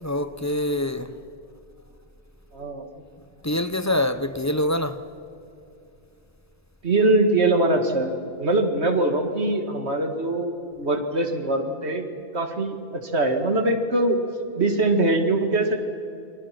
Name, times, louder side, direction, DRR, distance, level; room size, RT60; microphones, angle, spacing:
voice 1, 0.0-1.1 3.4-5.0, left 1 dB, 15° left, 0.8 m, -25 dB
voice 2, 2.5-2.9 6.8-8.1 8.4-12.1 12.3-14.2 14.6-15.8, right 2 dB, 80° right, 2.4 m, -22 dB
29.0 x 24.0 x 6.0 m
omnidirectional pair, 1.1 m